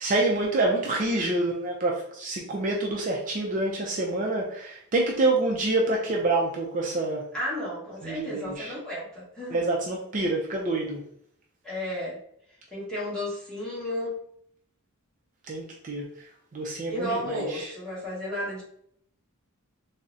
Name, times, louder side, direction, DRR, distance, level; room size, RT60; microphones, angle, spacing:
voice 1, 0.0-7.2 8.0-8.7 9.5-11.0 15.5-16.0 16.5-17.7, right 2 dB, 35° right, -1 dB, 0.4 m, -27 dB
voice 2, 7.3-9.6 11.6-12.2 12.7-14.2 16.9-18.6, left 1 dB, 5° left, -7 dB, 1.0 m, -33 dB
3.6 x 2.0 x 2.6 m, 0.69 s
head